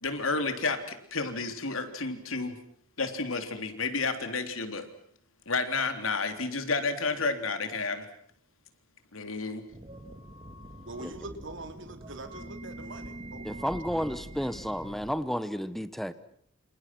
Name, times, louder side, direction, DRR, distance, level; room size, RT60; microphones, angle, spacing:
voice 1, 0.0-2.6 3.0-4.9 5.5-8.1 9.1-9.6, left 4 dB, 80° left, 7 dB, 3.7 m, -31 dB
sound 1, 9.7-15.1, right 1 dB, 30° right, 2.7 m, -44 dB
voice 2, 10.9-13.7, right 2 dB, 65° right, 7 dB, 3.5 m, -43 dB
voice 3, 13.4-16.1, equal, ahead, 12 dB, 1.2 m, -32 dB
29.0 x 28.0 x 6.2 m, 0.65 s
head